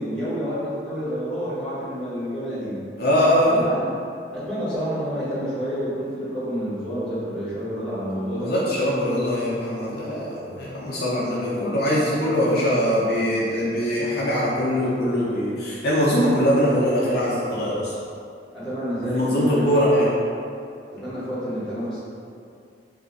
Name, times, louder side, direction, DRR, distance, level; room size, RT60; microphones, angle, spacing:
voice 1, 0.0-2.8 3.4-3.9 4.3-8.5 18.5-19.8 20.9-22.0, equal, 5° left, -12 dB, 1.3 m, -29 dB
voice 2, 3.0-3.6 8.4-17.9 19.0-20.1, equal, 60° left, -7 dB, 0.5 m, -22 dB
2.7 x 2.4 x 3.9 m, 2.4 s
head